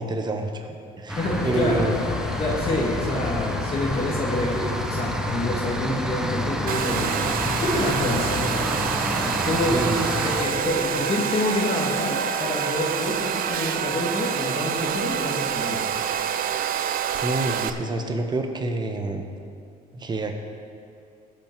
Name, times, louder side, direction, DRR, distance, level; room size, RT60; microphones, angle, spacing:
voice 1, 0.0-1.9 9.7-10.1 17.2-19.3 19.9-20.3, right 2 dB, 25° right, 4 dB, 1.1 m, -27 dB
sound 1, 1.1-10.4, equal, 5° right, 0.7 m, -29 dB
voice 2, 1.2-1.8 2.4-8.5 9.4-9.9 10.1-15.9, left 1 dB, 35° left, -4 dB, 1.8 m, -27 dB
sound 2, 1.3-11.1, left 7 dB, 60° left, 0.8 m, -35 dB
Domestic sounds home sounds, 6.7-17.7, right 8 dB, 60° right, 0.5 m, -27 dB
17.0 x 5.7 x 4.6 m, 2.5 s
cardioid pair, 110°, 17 cm